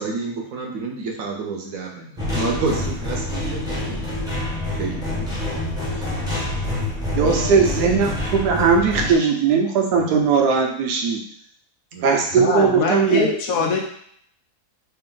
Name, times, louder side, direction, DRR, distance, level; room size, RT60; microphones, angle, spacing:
voice 1, 0.0-4.0 4.7-5.3 5.9-6.1 7.2-7.8 9.0-9.3 9.9-10.2 10.9-11.0 11.9-12.2 12.5-12.7 13.1-13.2, right 4 dB, 65° right, 1 dB, 1.0 m, -30 dB
sound 1, 2.2-9.1, left 1 dB, 5° right, 0.6 m, -26 dB
voice 2, 7.1-11.2 12.0-13.7, right 5 dB, 90° right, 2 dB, 1.3 m, -19 dB
voice 3, 12.4-13.8, left 5 dB, 70° left, 1 dB, 1.0 m, -22 dB
3.3 x 2.6 x 3.7 m, 0.66 s
omnidirectional pair, 1.7 m